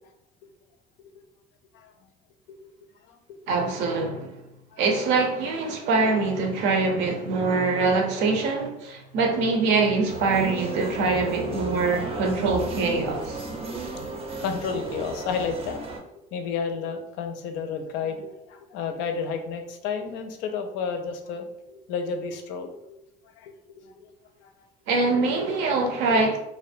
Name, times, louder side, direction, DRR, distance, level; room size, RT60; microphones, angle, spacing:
voice 1, 3.5-4.4 4.8-13.4 24.9-26.4, right 3 dB, 75° right, 0.6 m, -24 dB
sound 1, 10.1-16.0, right 2 dB, 35° right, 0.5 m, -34 dB
voice 2, 14.2-15.8 16.3-24.1 24.4-24.5, left 5 dB, 80° left, 0.4 m, -32 dB
2.5 x 2.1 x 2.5 m
supercardioid pair, 100°, 19 cm